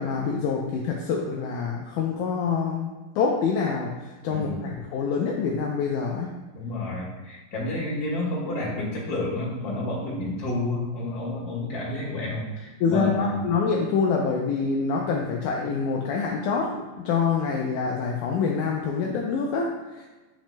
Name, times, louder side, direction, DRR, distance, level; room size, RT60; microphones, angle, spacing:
voice 1, 0.0-2.9 3.2-6.3 12.8-20.0, left 5 dB, 85° left, 0 dB, 1.7 m, -26 dB
voice 2, 4.3-4.8 6.5-13.5, left 2 dB, 35° left, -5 dB, 1.8 m, -30 dB
8.5 x 6.0 x 2.2 m, 1.2 s
omnidirectional pair, 4.2 m